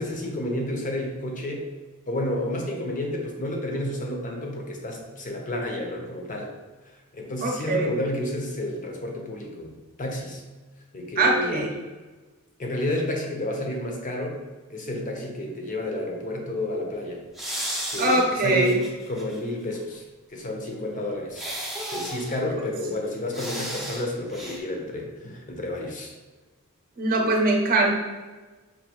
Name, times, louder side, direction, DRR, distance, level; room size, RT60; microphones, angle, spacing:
voice 1, 0.0-1.7 2.1-6.5 7.1-10.4 10.9-11.6 12.6-14.4 14.7-17.2 17.9-20.0 20.3-21.5 21.9-26.1, left 1 dB, 35° left, 1 dB, 0.7 m, -30 dB
voice 2, 7.4-7.9 11.2-11.7 18.0-18.8 27.0-28.0, right 2 dB, 40° right, 0 dB, 0.7 m, -22 dB
sound 1, 17.3-19.4 19.7-19.8 21.3-22.4 23.3-24.0 24.3-24.6, right 1 dB, ahead, 0.5 m, -34 dB
5.2 x 2.6 x 2.9 m, 1.3 s
head